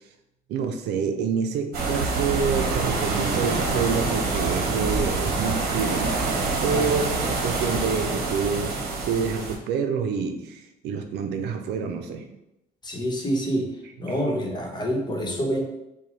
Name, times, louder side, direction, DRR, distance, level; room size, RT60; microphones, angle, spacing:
voice 1, 0.5-8.8 9.1-12.2, right 6 dB, 80° right, 5 dB, 0.6 m, -27 dB
sound 1, 1.7-9.6, right 3 dB, 65° right, 1.0 m, -26 dB
voice 2, 12.8-13.7 14.0-15.6, equal, 25° left, 0 dB, 1.1 m, -27 dB
6.7 x 2.3 x 3.2 m, 0.90 s
cardioid pair, 110°, 17 cm